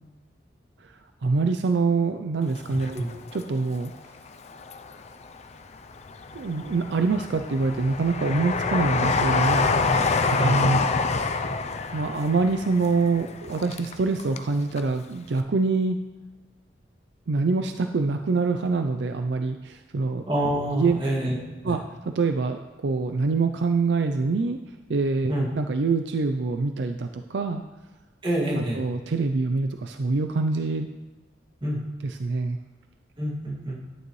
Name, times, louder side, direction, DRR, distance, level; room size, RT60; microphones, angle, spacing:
voice 1, 1.2-3.0 3.3-3.9 6.3-10.2 10.4-10.8 11.9-16.0 17.3-20.2 20.7-21.0 21.6-24.6 24.9-27.6 28.6-30.9 32.0-32.6, right 3 dB, 70° right, 7 dB, 0.5 m, -25 dB
Train, 2.6-3.8 4.3-5.2 5.7-14.5 14.8-14.9, left 4 dB, 40° left, 0.5 m, -27 dB
voice 2, 20.3-21.4 21.6-21.8 25.3-25.5 28.2-28.8 31.6-31.8 33.2-33.8, right 1 dB, 30° right, -3 dB, 2.2 m, -26 dB
11.0 x 9.2 x 3.2 m, 1.2 s
head